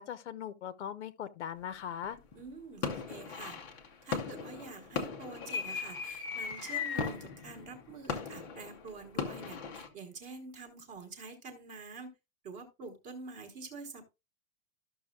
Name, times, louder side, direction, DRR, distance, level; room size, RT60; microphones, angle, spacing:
voice 1, 0.0-2.2, left 9 dB, 55° left, 0.8 m, -40 dB
sound 1, 2.0-2.4 2.8-9.9, left 6 dB, 15° left, 0.5 m, -38 dB
voice 2, 2.3-3.6 4.0-12.1 12.4-14.1, right 4 dB, 20° right, 1.1 m, -47 dB
13.0 x 6.1 x 2.3 m
supercardioid pair, 175°, 43 cm